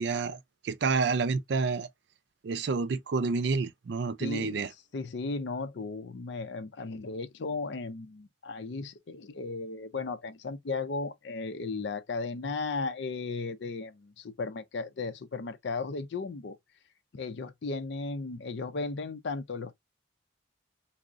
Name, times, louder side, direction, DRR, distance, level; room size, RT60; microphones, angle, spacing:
voice 1, 0.0-1.9 2.4-4.7, right 4 dB, 60° right, 0.4 m, -29 dB
voice 2, 4.2-4.6 4.9-16.6 17.1-19.7, left 3 dB, 65° left, 0.5 m, -35 dB
3.5 x 2.0 x 2.5 m
head